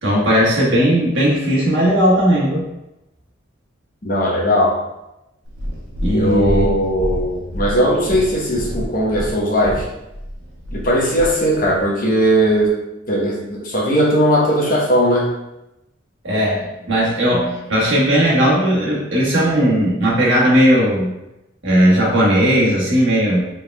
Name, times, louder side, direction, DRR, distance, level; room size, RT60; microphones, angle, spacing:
voice 1, 0.0-2.7 6.0-6.7 16.2-21.1 21.6-23.4, equal, 70° right, -5 dB, 1.4 m, -16 dB
voice 2, 4.0-4.8 6.1-9.8 10.7-12.7 13.1-15.3, equal, 45° left, -4 dB, 1.0 m, -18 dB
Purr, 5.4-11.8 12.5-12.6, equal, 90° right, 1.1 m, -28 dB
4.9 x 3.6 x 2.3 m, 0.92 s
head